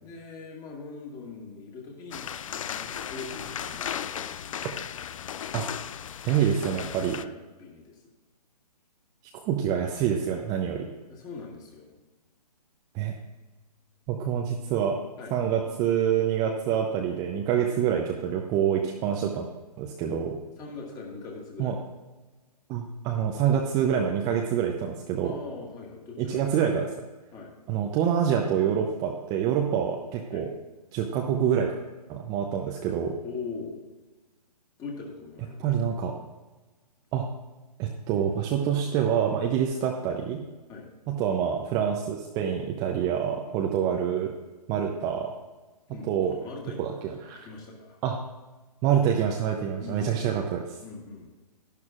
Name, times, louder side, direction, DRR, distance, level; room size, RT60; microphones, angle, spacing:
voice 1, 0.0-2.2 2.5-4.7 7.2-8.0 11.1-11.9 15.2-15.3 20.6-21.7 25.2-26.5 27.3-27.5 30.3-30.4 33.2-33.8 34.8-35.7 40.7-40.9 43.0-43.1 43.5-43.6 45.9-46.8 47.1-48.0 49.8-50.4 50.8-51.3, left 4 dB, 20° left, -1 dB, 1.9 m, -41 dB
sound 1, 2.1-7.2, left 9 dB, 50° left, 0.4 m, -36 dB
voice 2, 6.2-7.2 9.5-10.9 12.9-13.1 14.1-15.0 15.3-19.5 19.8-20.4 21.6-21.7 22.7-25.3 26.2-26.9 27.7-30.5 30.9-31.7 32.1-33.1 35.6-36.1 37.1-37.3 37.8-40.4 41.1-44.3 44.7-45.3 46.1-46.4 46.8-47.5 48.0-48.2 48.8-50.6, right 8 dB, 15° right, 1 dB, 0.6 m, -26 dB
12.0 x 11.0 x 2.5 m, 1.2 s
figure-of-eight pair, 135°, 21 cm